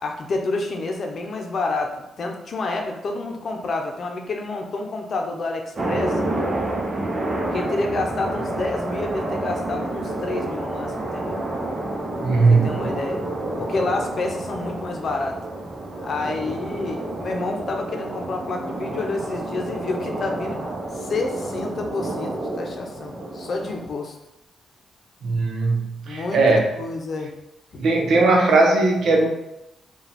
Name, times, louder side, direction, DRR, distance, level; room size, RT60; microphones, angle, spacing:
voice 1, 0.0-6.2 7.5-11.4 12.5-13.2 13.6-15.4 16.0-20.6 20.9-24.2 26.1-27.3 27.7-27.9, left 3 dB, 55° left, 2 dB, 0.7 m, -29 dB
sound 1, 5.7-23.9, right 1 dB, 35° right, 0.8 m, -29 dB
voice 2, 12.2-12.8 25.2-26.6 27.8-29.3, right 3 dB, 70° right, 1 dB, 0.8 m, -18 dB
4.8 x 2.4 x 3.5 m, 0.90 s
cardioid pair, 95°, 0 cm